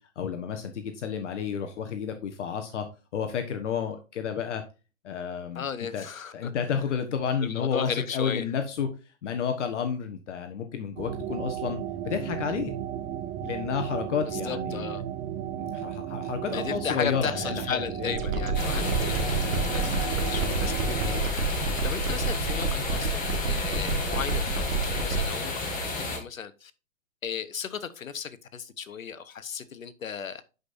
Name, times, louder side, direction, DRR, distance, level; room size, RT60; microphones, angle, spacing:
voice 1, 0.1-2.9 3.1-4.6 5.0-5.6 5.9-6.0 6.3-8.9 9.2-11.8 12.0-12.7 13.4-14.9 15.5-18.2, left 7 dB, 60° left, 1.3 m, -31 dB
voice 2, 5.5-6.8 7.4-8.5 14.2-15.0 16.5-19.3 19.7-21.2 21.8-26.7 27.2-30.4, left 7 dB, 85° left, 1.1 m, -35 dB
sound 1, 11.0-21.2, right 10 dB, 20° right, 0.7 m, -34 dB
sound 2, 18.1-25.3, right 3 dB, 80° right, 1.8 m, -29 dB
sound 3, 18.5-26.2, left 2 dB, 20° left, 2.5 m, -32 dB
11.5 x 5.4 x 2.7 m
hypercardioid pair, 130°, 40 cm